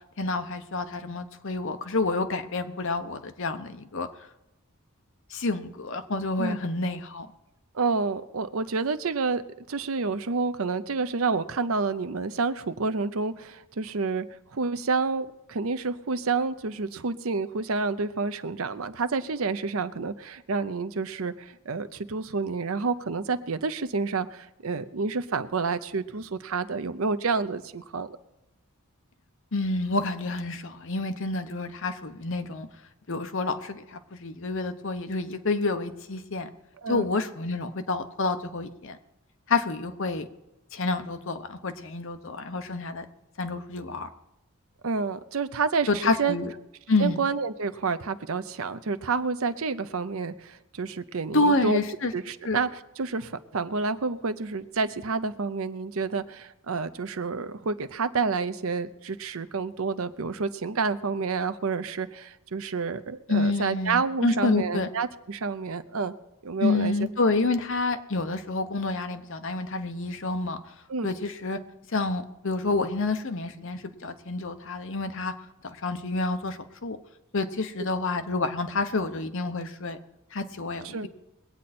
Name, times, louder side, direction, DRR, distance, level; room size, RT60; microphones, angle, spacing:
voice 1, 0.2-4.1 5.3-7.3 29.5-32.7 33.1-36.5 36.9-39.0 39.5-40.3 40.7-43.0 43.4-44.1 45.9-46.5 46.9-47.2 51.3-52.1 52.4-52.6 63.3-64.9 66.6-70.6 71.0-71.6 71.9-75.3 75.6-77.0 77.3-80.0 80.3-81.1, left 3 dB, 60° left, 8 dB, 1.0 m, -28 dB
voice 2, 7.7-9.4 9.7-14.3 14.5-28.1 36.8-37.1 44.8-46.4 47.0-51.8 52.1-66.1 66.4-66.9 67.2-67.3 70.9-71.1 80.8-81.1, right 4 dB, 70° right, 12 dB, 0.7 m, -29 dB
21.5 x 8.8 x 4.3 m, 0.94 s
head